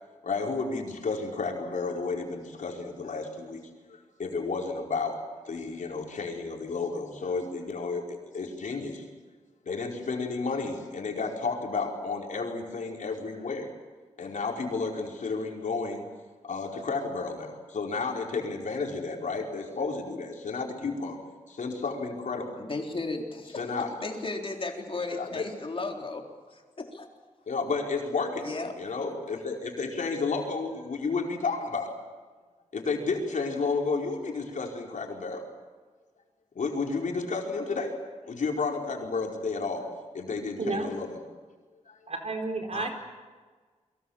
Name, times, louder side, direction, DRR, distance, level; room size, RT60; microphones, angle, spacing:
voice 1, 0.2-3.6 4.2-5.2 5.4-9.0 9.7-13.7 14.2-16.0 16.4-21.2 21.5-22.6 23.6-23.9 25.1-25.4 27.5-31.9 32.7-35.4 36.5-37.9 38.2-39.8 40.1-41.1 41.9-42.0, left 4 dB, 85° left, 1 dB, 4.5 m, -32 dB
voice 2, 22.6-23.6 24.0-26.3 26.5-27.1 28.4-28.8 42.7-42.9, left 3 dB, 45° left, 2 dB, 3.9 m, -35 dB
voice 3, 42.1-42.9, right 3 dB, 55° right, 4 dB, 4.7 m, -31 dB
29.5 x 23.5 x 7.2 m, 1.4 s
wide cardioid pair, 105°, 13 cm